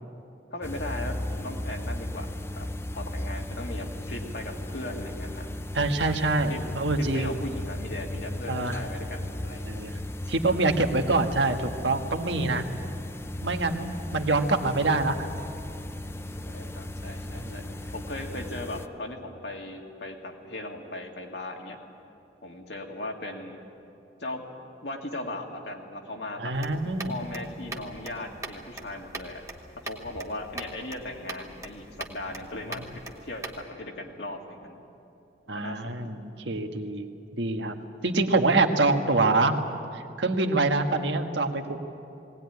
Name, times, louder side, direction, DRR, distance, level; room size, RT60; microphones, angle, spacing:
voice 1, 0.5-2.3 2.5-2.7 2.9-5.5 6.5-6.6 7.0-9.9 16.5-17.6 17.9-21.8 22.4-23.6 24.2-24.5 24.8-26.5 27.1-29.4 29.8-34.8 35.5-36.1, left 1 dB, 70° left, 1 dB, 2.2 m, -38 dB
sound 1, 0.6-18.9, left 1 dB, 15° left, 0.5 m, -36 dB
voice 2, 5.7-7.3 8.5-8.8 9.6-10.0 10.3-12.7 13.4-15.3 17.4-17.7 26.4-27.2 32.8-32.9 35.5-37.1 37.4-37.8 38.0-39.5 39.9-41.6, right 3 dB, 80° right, 5 dB, 1.4 m, -25 dB
sound 2, 26.5-33.6, right 2 dB, 15° right, 1.3 m, -42 dB
19.5 x 18.0 x 9.5 m, 2.8 s
head